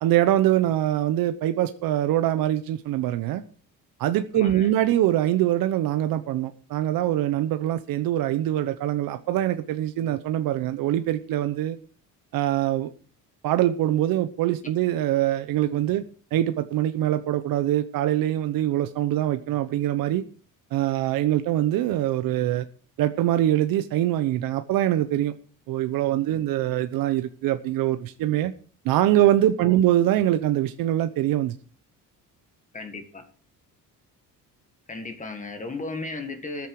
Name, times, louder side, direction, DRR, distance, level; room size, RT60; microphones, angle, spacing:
voice 1, 0.0-3.4 4.0-11.8 12.3-12.9 13.4-16.0 16.3-20.2 20.7-22.6 23.0-25.3 25.7-28.5 28.8-31.5, right 13 dB, 75° right, 0.9 m, -23 dB
voice 2, 4.3-4.7 29.6-29.8 32.7-33.2 34.9-36.7, left 3 dB, 20° left, 1.8 m, -35 dB
13.5 x 10.5 x 4.8 m
cardioid pair, 140°, 35 cm